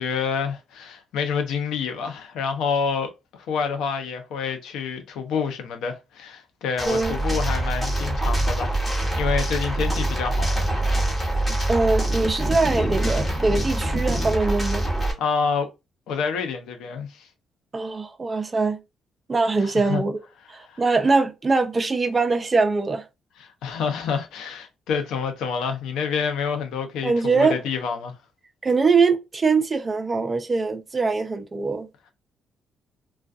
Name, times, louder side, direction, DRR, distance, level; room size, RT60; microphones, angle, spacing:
voice 1, 0.0-8.8 9.2-10.7 15.2-15.7 16.1-17.3 19.6-20.0 20.7-20.8 23.4-28.2, left 6 dB, 85° left, 0.6 m, -28 dB
sound 1, 6.8-15.1, right 1 dB, 10° left, 1.1 m, -24 dB
voice 2, 6.8-7.2 11.7-14.9 17.7-18.8 19.3-20.2 20.5-23.1 27.0-27.6 28.6-32.1, right 4 dB, 30° right, 0.5 m, -22 dB
2.4 x 2.3 x 2.4 m
cardioid pair, 90°, 0 cm